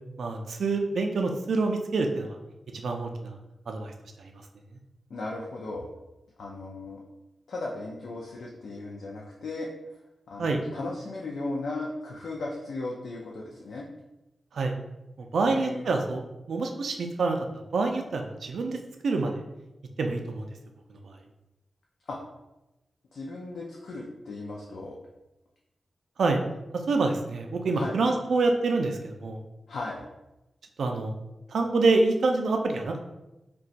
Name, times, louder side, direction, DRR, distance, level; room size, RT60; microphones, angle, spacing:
voice 1, 0.2-2.4 2.7-3.4 3.7-3.9 10.4-10.6 14.5-14.7 15.2-16.2 16.5-17.5 17.7-19.4 20.0-20.5 21.0-21.2 26.2-26.4 26.9-29.4 30.8-31.1 31.5-33.0, right 3 dB, 80° right, 4 dB, 0.3 m, -26 dB
voice 2, 5.1-5.9 6.4-7.0 7.5-9.7 10.3-13.9 15.4-15.9 22.1-22.2 23.1-25.0 27.7-28.0 29.7-30.1, left 2 dB, 85° left, -3 dB, 0.4 m, -36 dB
2.4 x 2.2 x 3.8 m, 0.97 s
wide cardioid pair, 175°, 0 cm